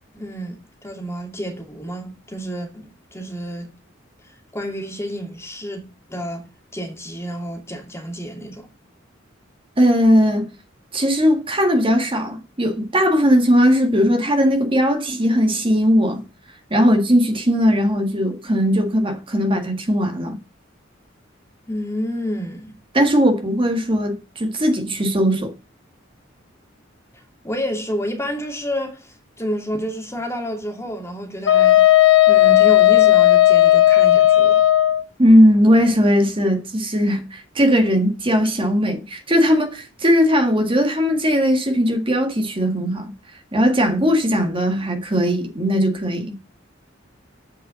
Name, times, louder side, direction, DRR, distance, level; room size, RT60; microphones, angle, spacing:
voice 1, 0.1-3.7 4.5-5.8 6.1-6.4 6.7-8.7 21.7-22.8 27.4-31.9 32.3-34.6, equal, 15° left, 2.5 m, -29 dB
voice 2, 9.8-10.5 10.9-16.2 16.7-20.4 22.9-25.5 35.2-43.1 43.5-46.4, equal, 30° right, 1.9 m, -18 dB
Wind instrument woodwind instrument, 31.5-35.0, left 14 dB, 85° left, 1.3 m, -13 dB
8.7 x 5.6 x 6.8 m
head